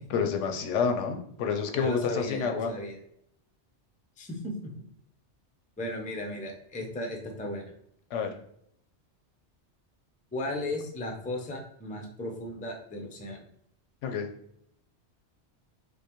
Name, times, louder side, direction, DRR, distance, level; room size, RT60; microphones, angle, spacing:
voice 1, 0.1-2.7 8.1-8.3 14.0-14.3, left 6 dB, 90° left, 6 dB, 0.9 m, -28 dB
voice 2, 1.7-3.0 4.2-4.7 5.8-7.7 10.3-13.4, left 1 dB, 10° left, 2 dB, 0.3 m, -35 dB
5.3 x 2.1 x 2.9 m, 0.71 s
omnidirectional pair, 1.2 m